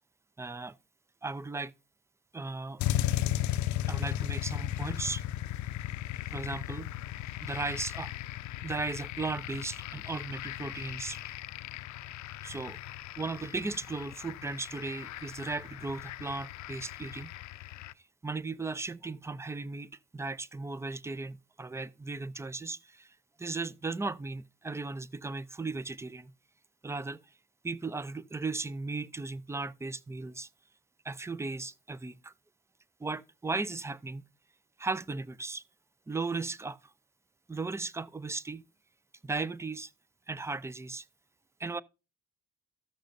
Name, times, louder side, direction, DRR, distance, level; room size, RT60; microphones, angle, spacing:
voice 1, 0.4-0.7 1.2-1.7 2.3-3.1 3.9-5.2 6.3-6.9 7.4-8.1 8.6-11.3 12.4-12.8 13.2-17.3 18.2-26.3 26.8-27.2 27.6-30.5 31.0-32.3 33.0-34.2 34.8-35.6 36.1-36.8 37.5-38.6 39.2-39.9 40.3-41.1 41.6-41.8, right 3 dB, 10° right, 0.4 m, -36 dB
sound 1, 2.8-17.9, left 13 dB, 70° left, 0.5 m, -36 dB
14.0 x 6.4 x 2.5 m
cardioid pair, 90°, 30 cm